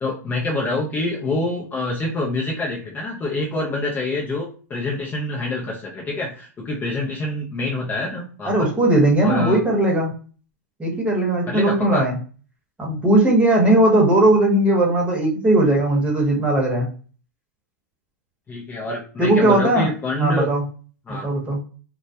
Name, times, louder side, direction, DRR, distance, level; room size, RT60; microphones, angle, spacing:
voice 1, 0.0-8.7 9.2-9.6 11.5-12.1 18.5-20.5 21.1-21.3, left 2 dB, 20° left, -2 dB, 0.5 m, -26 dB
voice 2, 8.4-10.1 10.8-12.1 12.8-16.9 19.2-19.9 20.2-20.6 21.1-21.6, right 1 dB, 15° right, -1 dB, 0.9 m, -18 dB
2.2 x 2.1 x 2.7 m, 0.39 s
hypercardioid pair, 120°, 9 cm